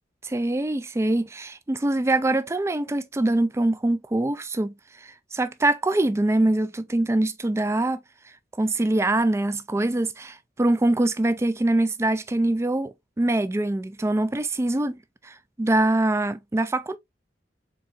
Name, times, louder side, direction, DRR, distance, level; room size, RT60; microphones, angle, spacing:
voice 1, 0.2-4.7 5.0-8.0 8.6-15.0 15.2-17.0, right 2 dB, 15° right, 0.3 m, -24 dB
4.6 x 3.8 x 2.5 m
head